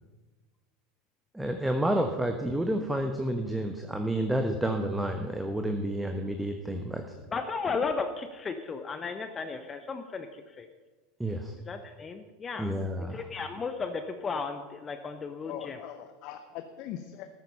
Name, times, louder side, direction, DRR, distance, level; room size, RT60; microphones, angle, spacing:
voice 1, 1.3-7.0 11.2-11.5 12.6-13.3, right 1 dB, 5° right, 5 dB, 1.1 m, -30 dB
voice 2, 7.3-10.3 10.6-10.7 11.7-12.7 13.0-15.8, left 4 dB, 25° left, 8 dB, 0.9 m, -34 dB
voice 3, 15.4-17.3, left 10 dB, 50° left, 8 dB, 0.7 m, -41 dB
13.5 x 9.2 x 5.6 m, 1.3 s
figure-of-eight pair, 75°, 0 cm